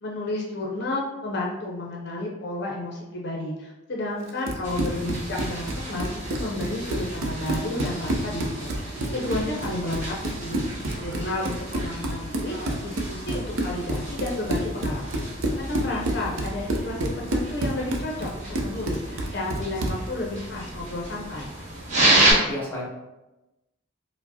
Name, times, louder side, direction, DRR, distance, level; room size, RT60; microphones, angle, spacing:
voice 1, 0.0-15.0 15.6-21.5, left 2 dB, 50° left, -2 dB, 0.5 m, -32 dB
Run, 4.3-20.1, right 1 dB, 75° right, 0.5 m, -29 dB
sound 1, 4.6-22.3, right 1 dB, 35° right, 0.9 m, -31 dB
voice 2, 22.1-22.9, equal, 10° left, -4 dB, 0.7 m, -33 dB
4.6 x 2.0 x 2.7 m, 0.99 s
head